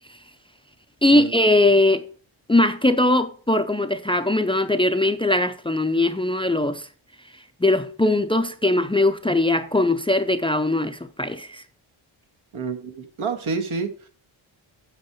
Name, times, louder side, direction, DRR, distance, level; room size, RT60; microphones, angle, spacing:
voice 1, 1.0-2.0 2.5-6.9 7.6-11.6, left 2 dB, 10° left, 0.5 m, -20 dB
voice 2, 12.5-14.1, right 5 dB, 75° right, 1.6 m, -29 dB
8.1 x 4.7 x 6.9 m
wide cardioid pair, 105°, 49 cm